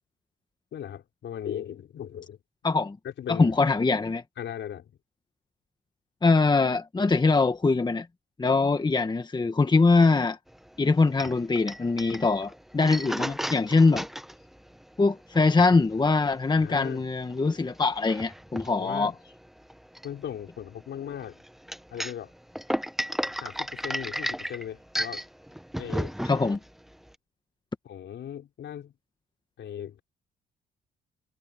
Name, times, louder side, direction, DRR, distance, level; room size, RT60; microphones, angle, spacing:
voice 1, 0.7-2.4 3.0-3.9 4.4-4.9 16.5-17.0 18.8-19.1 20.0-21.4 21.9-22.3 23.4-25.2 25.8-26.1 27.8-28.9 29.6-30.0, left 9 dB, 65° left, 5.1 m, -38 dB
voice 2, 2.6-3.0 3.3-4.2 6.2-8.1 8.4-10.4 10.8-14.1 15.0-19.1 26.2-26.6, left 3 dB, 20° left, 1.4 m, -23 dB
sound 1, 10.5-27.1, equal, ahead, 0.8 m, -35 dB
cardioid pair, 90°, 20 cm